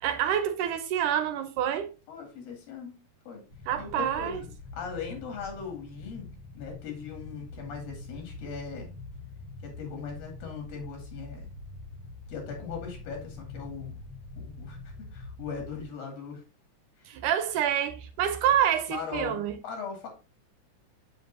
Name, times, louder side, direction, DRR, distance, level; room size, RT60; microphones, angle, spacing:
voice 1, 0.0-1.9 3.7-4.4 17.1-19.5, right 10 dB, 75° right, 2.0 m, -27 dB
voice 2, 2.1-3.0 3.3-3.4 3.8-4.5 4.7-6.3 6.5-8.9 9.6-11.5 12.3-14.0 14.3-16.4 17.0-17.2 18.9-20.1, left 6 dB, 80° left, 4.1 m, -39 dB
sound 1, 3.5-15.9, left 3 dB, 60° left, 1.1 m, -44 dB
7.2 x 7.1 x 2.7 m
omnidirectional pair, 4.0 m